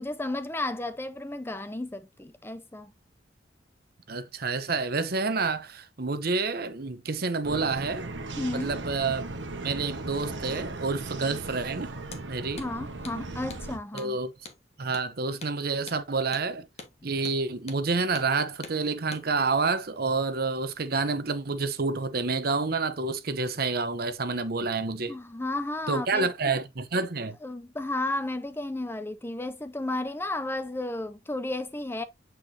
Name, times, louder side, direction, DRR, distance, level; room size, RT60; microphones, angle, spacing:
voice 1, 0.0-2.9 8.4-8.7 12.6-14.2 25.1-26.3 27.4-32.0, left 2 dB, 10° left, 0.5 m, -33 dB
voice 2, 4.1-8.1 8.5-9.2 9.6-11.9 12.3-12.6 13.9-14.3 14.8-16.7 17.0-25.1 25.9-27.4, right 4 dB, 55° right, 0.9 m, -28 dB
sound 1, 7.4-13.8, right 2 dB, 80° right, 1.3 m, -37 dB
Hammer, 12.0-12.3 12.6-12.7 13.0-13.2 13.5-13.7 14.0-14.1 14.5-14.6 14.9-15.1 15.4-15.6 15.9-16.0 16.3-16.5 16.8-16.9 17.3-17.4 17.7-17.8 18.2-18.3 18.6-18.8 19.1-19.3, left 4 dB, 35° left, 1.4 m, -44 dB
8.2 x 4.7 x 2.7 m
head